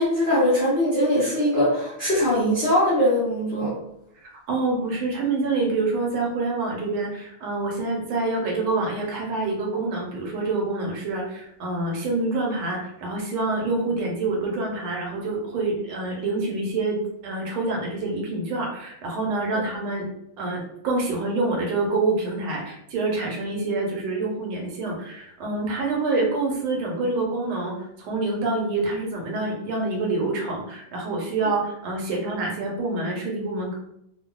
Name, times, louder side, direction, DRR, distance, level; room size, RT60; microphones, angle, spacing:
voice 1, 0.0-3.7, equal, 65° left, -9 dB, 0.6 m, -21 dB
voice 2, 4.2-20.1 20.4-33.8, right 3 dB, 75° right, -1 dB, 1.5 m, -26 dB
3.4 x 2.3 x 2.3 m, 0.76 s
omnidirectional pair, 2.4 m